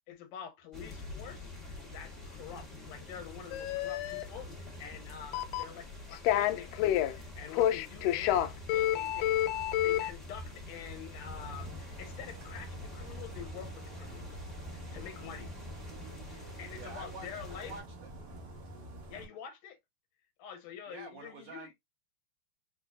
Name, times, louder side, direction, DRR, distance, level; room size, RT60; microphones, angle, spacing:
voice 1, 0.1-9.5 9.8-14.4 14.7-15.5 16.3-17.7 19.1-19.8 20.4-21.7, left 8 dB, 70° left, 1.9 m, -47 dB
sound 1, 0.7-17.8, left 2 dB, ahead, 0.4 m, -46 dB
sound 2, 3.5-4.2 5.3-5.8 6.1-7.1 7.5-10.1, left 12 dB, 90° left, 1.4 m, -28 dB
sound 3, 11.3-19.3, right 1 dB, 55° right, 2.1 m, -47 dB
voice 2, 16.7-18.1 20.9-21.8, right 4 dB, 75° right, 2.0 m, -47 dB
6.1 x 2.5 x 2.3 m
omnidirectional pair, 3.4 m